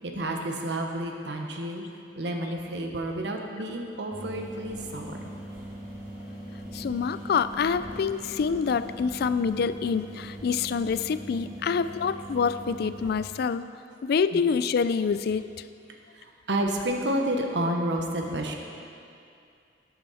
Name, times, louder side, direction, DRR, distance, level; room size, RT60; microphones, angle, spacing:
voice 1, 0.0-1.8 2.1-5.2 14.3-14.4 16.1-18.5, right 1 dB, 70° right, 2 dB, 1.1 m, -30 dB
sound 1, 4.1-13.1, equal, 55° right, 2.8 m, -41 dB
voice 2, 6.7-13.6 14.0-15.4, left 6 dB, 60° left, 13 dB, 0.3 m, -26 dB
11.5 x 8.8 x 4.2 m, 2.5 s
head